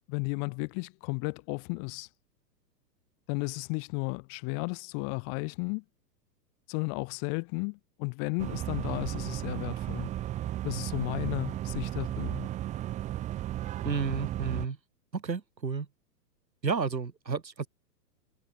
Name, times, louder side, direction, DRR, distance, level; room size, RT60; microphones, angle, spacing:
voice 1, 0.0-2.1 3.3-5.8 6.7-10.1 10.6-12.5, left 40 dB or more, 40° left, 7.6 m, -34 dB
sound 1, 8.4-14.7, right 13 dB, 15° right, 0.7 m, -34 dB
voice 2, 13.8-14.8 15.1-15.9 16.6-17.7, right 5 dB, 85° right, 3.6 m, -31 dB
figure-of-eight pair, 115°, 49 cm